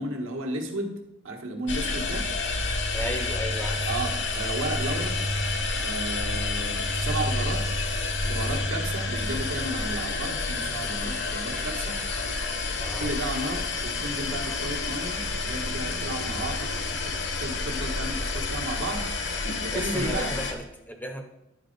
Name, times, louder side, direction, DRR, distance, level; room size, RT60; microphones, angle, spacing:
voice 1, 0.0-2.3 3.8-5.2 5.8-7.7 8.2-12.0 13.0-17.1 17.4-19.1 19.6-20.3, right 1 dB, 75° right, 2 dB, 1.3 m, -33 dB
sound 1, 1.7-20.5, left 3 dB, 55° left, 0.9 m, -29 dB
voice 2, 2.9-3.8 12.8-13.1 19.7-21.2, equal, 10° left, 5 dB, 0.6 m, -34 dB
10.5 x 4.3 x 5.2 m, 0.90 s
head